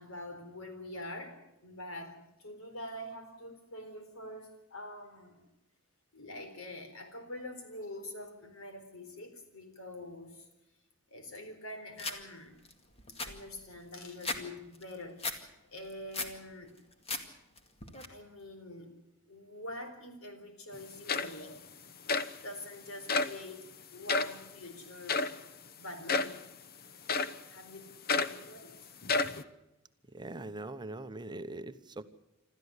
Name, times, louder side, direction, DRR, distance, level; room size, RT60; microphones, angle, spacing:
voice 1, 0.0-5.5 6.1-10.5 11.1-12.6 13.1-16.7 18.1-18.9 19.3-21.6 22.4-25.2 25.8-26.4 27.5-27.9 28.2-28.8, left 1 dB, 85° left, 6 dB, 4.1 m, -45 dB
sound 1, 12.0-12.2 12.7-12.8 13.0-14.4 14.7-15.4 15.8-16.4 16.8-17.2 17.6-18.1, left 3 dB, 30° left, 2.1 m, -37 dB
sound 2, 20.7-20.8 21.1-21.6 22.1-22.3 23.1-23.4 24.1-24.4 25.1-25.4 26.1-26.4 27.1-27.4 28.1-28.4 29.0-29.4, left 4 dB, 45° left, 0.9 m, -30 dB
voice 2, 30.1-32.0, right 2 dB, 20° right, 11 dB, 0.9 m, -41 dB
27.0 x 13.5 x 8.2 m, 0.94 s
head